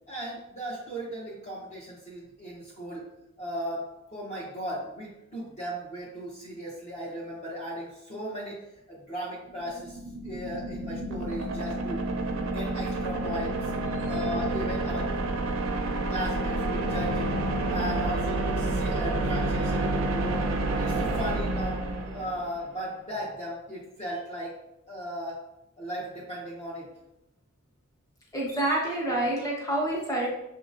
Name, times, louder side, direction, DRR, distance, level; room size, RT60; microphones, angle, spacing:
voice 1, 0.1-3.1 3.4-8.6 8.9-10.0 10.2-12.0 12.4-13.6 14.0-15.1 15.6-17.3 17.6-20.4 20.7-21.8 22.1-24.5 24.9-25.4 25.8-26.9, equal, 35° left, -7 dB, 0.9 m, -36 dB
sound 1, 9.5-22.6, right 2 dB, 70° right, 0.5 m, -29 dB
voice 2, 28.3-30.3, right 1 dB, 15° left, -5 dB, 1.2 m, -27 dB
6.2 x 2.8 x 2.5 m, 0.85 s
head